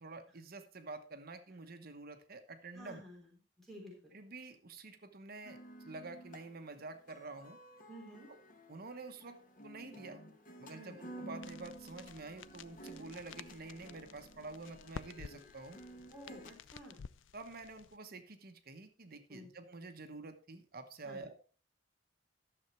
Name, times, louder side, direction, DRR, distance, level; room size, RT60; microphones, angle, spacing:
voice 1, 0.0-3.0 4.1-5.6 5.8-7.6 8.3-8.4 8.7-10.2 10.6-15.8 17.3-21.3, right 3 dB, 50° right, 7 dB, 1.0 m, -48 dB
voice 2, 2.7-4.1 7.9-8.3 10.7-11.0 16.1-17.0 19.3-19.5 21.0-21.2, equal, ahead, -2 dB, 3.5 m, -52 dB
sound 1, 5.4-16.6, right 1 dB, 45° left, 1.3 m, -53 dB
sound 2, 11.4-18.0, left 6 dB, 75° left, 0.4 m, -52 dB
12.5 x 6.9 x 4.4 m, 0.38 s
head